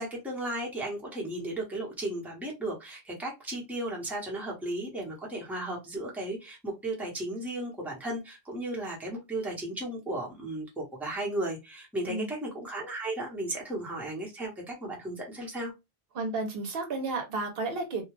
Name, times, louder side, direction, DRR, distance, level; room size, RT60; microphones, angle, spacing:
voice 1, 0.0-15.7, right 1 dB, ahead, 0.8 m, -35 dB
voice 2, 16.1-18.0, right 3 dB, 70° right, 0.8 m, -32 dB
2.2 x 2.2 x 3.1 m
omnidirectional pair, 1.0 m